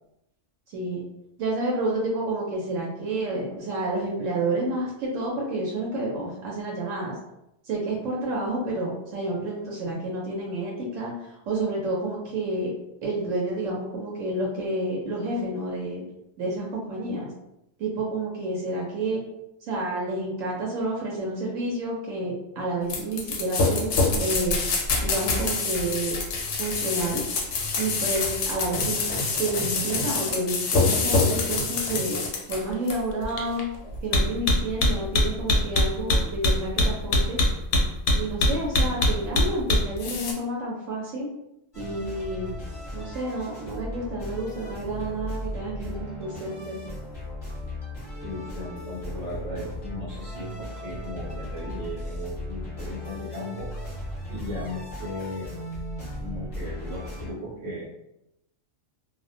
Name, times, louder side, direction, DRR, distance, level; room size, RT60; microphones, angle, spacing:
voice 1, 0.7-1.0 1.4-7.1 7.6-12.7 13.0-16.0 16.4-17.3 17.8-19.2 19.7-24.6 25.0-26.1 26.6-27.2 27.8-29.1 29.4-32.2 32.5-33.6 34.0-37.4 38.1-41.3 41.8-42.5 42.9-46.8, right 2 dB, 80° right, -2 dB, 1.0 m, -29 dB
sound 1, 22.9-40.3, left 2 dB, 70° left, 0.8 m, -24 dB
sound 2, 41.7-57.3, left 1 dB, 25° left, 0.6 m, -36 dB
voice 2, 48.2-53.7 54.3-55.5 56.2-57.9, left 1 dB, 40° right, -5 dB, 0.7 m, -36 dB
2.3 x 2.1 x 2.5 m, 0.86 s
omnidirectional pair, 1.3 m